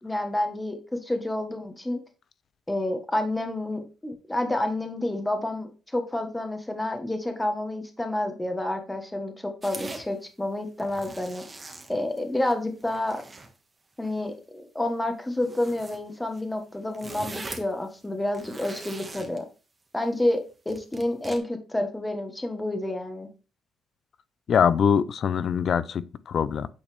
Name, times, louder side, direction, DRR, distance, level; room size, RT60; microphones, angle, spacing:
voice 1, 0.0-2.0 2.7-11.4 11.9-13.2 14.0-19.4 19.9-23.3, left 1 dB, 10° left, 1.4 m, -29 dB
sound 1, 9.6-10.0 10.7-12.5 12.8-13.5 14.0-14.3 15.4-16.0 16.3-16.4 16.7-17.7 18.2-19.4 20.7-21.4, right 3 dB, 25° right, 1.3 m, -41 dB
voice 2, 24.5-26.7, left 7 dB, 55° left, 0.5 m, -23 dB
8.7 x 4.1 x 3.4 m
cardioid pair, 90°, 0 cm